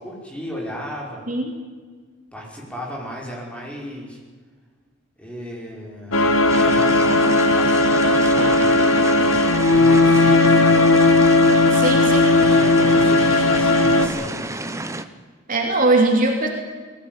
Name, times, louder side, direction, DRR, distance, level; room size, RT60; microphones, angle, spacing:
voice 1, 0.0-1.2 2.3-4.2 5.2-6.2 6.5-9.4 9.7-10.9 12.3-14.4, equal, 5° left, -2 dB, 5.8 m, -33 dB
sound 1, 6.1-14.1, left 2 dB, 90° left, 2.2 m, -16 dB
sound 2, 6.5-15.0, right 2 dB, 15° right, 1.0 m, -30 dB
voice 2, 11.7-12.3 15.5-16.5, right 2 dB, 40° right, 2 dB, 3.0 m, -20 dB
21.5 x 17.5 x 9.7 m, 1.6 s
head